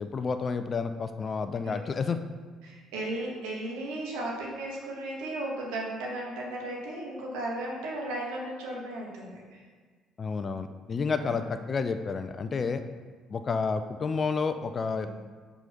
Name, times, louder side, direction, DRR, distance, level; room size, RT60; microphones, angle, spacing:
voice 1, 0.0-2.2 10.2-12.8 13.3-15.1, left 5 dB, 40° left, 9 dB, 0.3 m, -30 dB
voice 2, 2.6-9.6 11.2-11.4 14.9-15.1, right 1 dB, 80° right, -2 dB, 1.3 m, -35 dB
4.8 x 3.9 x 5.6 m, 1.5 s
hypercardioid pair, 60°, 0 cm